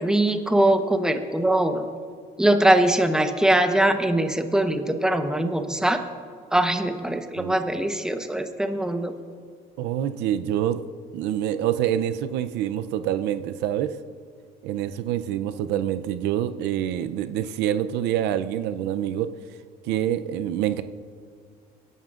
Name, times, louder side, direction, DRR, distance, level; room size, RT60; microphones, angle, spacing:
voice 1, 0.0-1.9 2.4-6.0 6.5-9.1, right 1 dB, 5° right, 7 dB, 0.9 m, -22 dB
voice 2, 9.8-10.8 11.1-14.0 14.6-19.3 19.8-20.8, right 11 dB, 85° right, 11 dB, 0.5 m, -26 dB
26.0 x 11.0 x 2.4 m, 2.1 s
cardioid pair, 110°, 17 cm